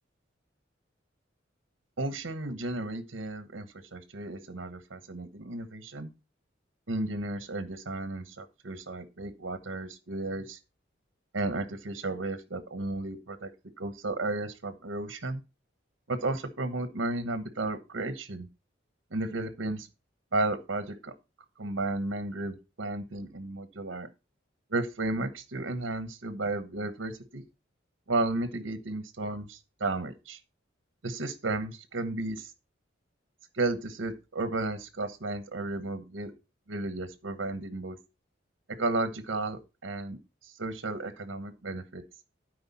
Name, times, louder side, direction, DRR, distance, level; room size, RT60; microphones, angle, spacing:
voice 1, 2.0-6.1 6.9-10.6 11.3-13.5 13.8-15.4 16.1-18.5 19.1-19.9 20.3-21.1 21.6-24.1 24.7-27.4 28.1-30.4 31.0-32.5 33.5-36.3 36.7-38.0 38.8-40.2 40.4-42.0, right 2 dB, 80° right, 11 dB, 1.1 m, -33 dB
12.0 x 4.9 x 4.2 m, 0.28 s
head